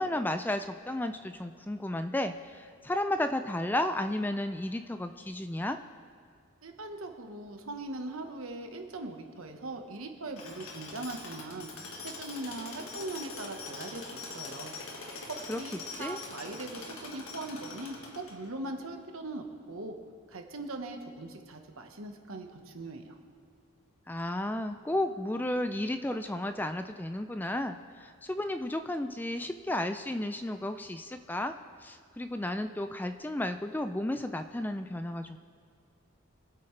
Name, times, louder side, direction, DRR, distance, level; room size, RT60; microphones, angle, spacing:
voice 1, 0.0-5.8 15.5-15.6 15.9-16.2 24.1-31.5 31.8-35.4, left 1 dB, 10° left, 8 dB, 0.3 m, -33 dB
voice 2, 6.6-11.7 12.0-14.7 15.0-20.0 20.3-23.2, right 2 dB, 85° right, 4 dB, 1.3 m, -40 dB
Tools, 10.4-18.7, left 3 dB, 85° left, 1.7 m, -43 dB
24.0 x 8.5 x 3.3 m, 2.3 s
head